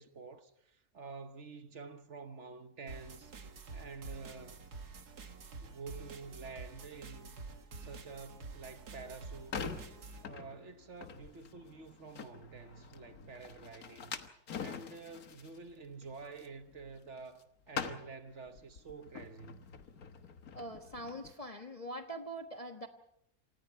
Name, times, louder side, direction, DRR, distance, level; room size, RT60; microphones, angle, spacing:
voice 1, 0.0-3.3 3.7-4.7 5.6-7.4 7.8-9.6 10.2-19.7, right 4 dB, 50° right, 1.3 m, -49 dB
sound 1, 2.9-10.2, right 4 dB, 80° right, 2.3 m, -48 dB
sound 2, 9.1-17.4 17.7-21.3, left 6 dB, 70° left, 1.8 m, -45 dB
voice 2, 20.5-22.9, right 1 dB, 25° left, 1.3 m, -43 dB
28.5 x 25.5 x 4.5 m
omnidirectional pair, 1.6 m